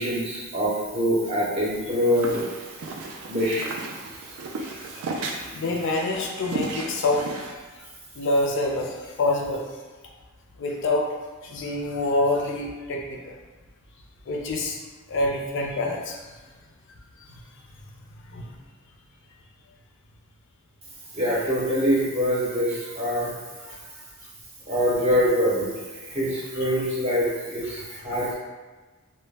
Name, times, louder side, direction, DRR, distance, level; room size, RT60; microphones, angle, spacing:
voice 1, 0.0-2.4 3.3-3.7 21.1-23.3 24.7-25.7 26.1-28.3, equal, 30° right, -6 dB, 0.6 m, -24 dB
sound 1, 1.7-7.5, right 3 dB, 75° right, 0.3 m, -35 dB
voice 2, 4.6-7.9 8.2-9.7 10.6-11.1 11.4-13.4 14.3-14.8 15.1-16.4 17.2-17.3 18.3-18.5 23.6-23.8 27.7-27.8 28.1-28.2, left 2 dB, 55° left, 0 dB, 0.4 m, -27 dB
2.1 x 2.0 x 3.2 m, 1.3 s
head